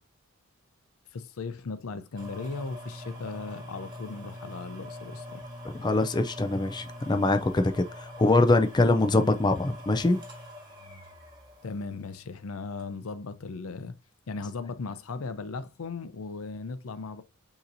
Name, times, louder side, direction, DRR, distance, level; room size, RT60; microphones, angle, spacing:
voice 1, 1.1-5.4 11.6-13.9 14.3-17.2, left 4 dB, 85° left, 0.5 m, -37 dB
sound 1, 2.2-12.2 12.8-12.9, equal, 20° right, 1.6 m, -44 dB
voice 2, 5.7-10.2, left 2 dB, 20° left, 0.4 m, -23 dB
6.6 x 2.9 x 2.6 m
head